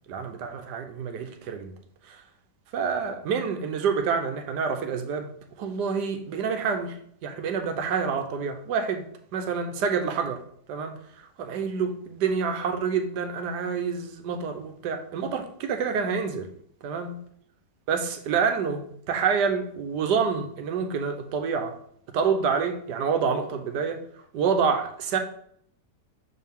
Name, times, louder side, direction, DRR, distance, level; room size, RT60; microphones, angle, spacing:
voice 1, 0.1-1.7 2.0-2.2 2.7-5.3 5.6-6.9 7.2-9.1 9.3-10.4 10.7-16.5 16.8-17.1 17.9-21.7 22.1-24.0 24.3-25.2, right 6 dB, 75° right, 1.4 m, -27 dB
6.7 x 4.5 x 3.6 m
omnidirectional pair, 1.8 m